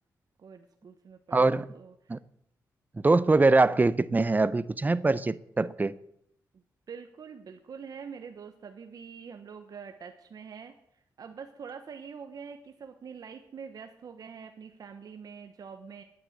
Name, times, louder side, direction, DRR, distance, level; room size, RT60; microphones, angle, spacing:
voice 1, 0.4-2.2 6.5-10.7 11.2-16.0, right 6 dB, 60° right, 1.1 m, -45 dB
voice 2, 1.3-1.7 2.1-2.2 3.0-6.0, right 3 dB, 25° right, 0.7 m, -23 dB
10.0 x 9.6 x 8.2 m
cardioid pair, 75°, 7 cm